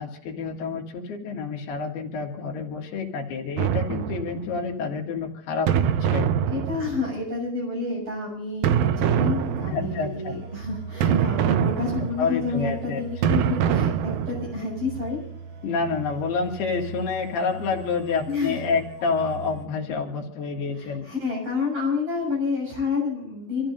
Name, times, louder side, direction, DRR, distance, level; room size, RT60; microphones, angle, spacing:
voice 1, 0.0-5.7 6.0-6.3 9.7-10.4 12.2-13.0 15.6-21.1, left 5 dB, 80° left, 1 dB, 3.9 m, -28 dB
sound 1, 3.6-4.6 5.7-7.3 8.6-10.0 11.0-12.4 13.2-14.6, right 8 dB, 75° right, 2.3 m, -24 dB
voice 2, 6.5-13.9 14.3-15.2 18.3-18.6 20.7-23.7, left 4 dB, 35° right, -1 dB, 8.1 m, -29 dB
sound 2, 9.0-19.7, right 6 dB, 55° right, 1.1 m, -40 dB
28.0 x 15.0 x 2.6 m, 0.69 s
omnidirectional pair, 4.6 m